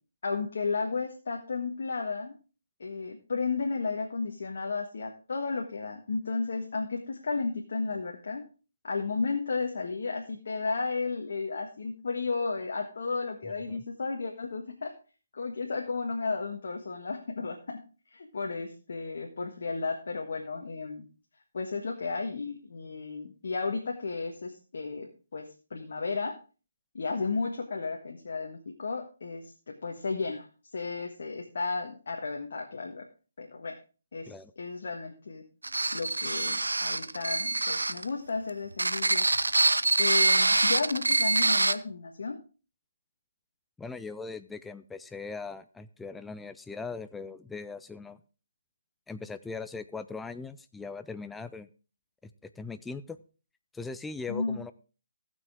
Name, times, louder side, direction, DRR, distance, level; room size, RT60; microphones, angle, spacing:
voice 1, 0.2-2.3 2.8-8.4 8.8-14.9 15.3-17.8 18.1-21.1 21.5-26.4 26.9-30.5 30.7-33.0 33.4-33.8 34.1-35.4 35.9-39.2 40.0-42.4 54.3-54.6, left 4 dB, 65° left, 2 dB, 1.5 m, -33 dB
voice 2, 13.4-13.8 34.3-34.5 43.8-48.2 49.1-51.7 52.2-53.2 53.7-54.7, left 4 dB, 5° left, 11 dB, 0.4 m, -40 dB
sound 1, 35.6-38.0 38.7-41.8, right 2 dB, 90° right, 0.5 m, -25 dB
17.5 x 6.2 x 3.6 m, 0.35 s
figure-of-eight pair, 150°, 0 cm